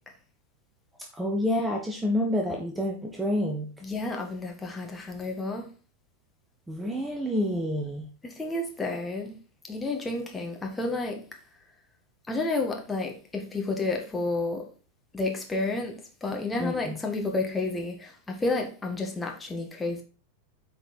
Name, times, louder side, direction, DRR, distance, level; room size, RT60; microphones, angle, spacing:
voice 1, 1.1-3.7 6.7-8.1 16.6-17.0, left 1 dB, 10° right, 1.3 m, -28 dB
voice 2, 3.8-5.7 8.2-9.4 9.6-11.3 12.3-14.7 15.1-20.0, left 2 dB, 10° left, 1.8 m, -31 dB
8.8 x 4.5 x 4.4 m
figure-of-eight pair, 90°, 0 cm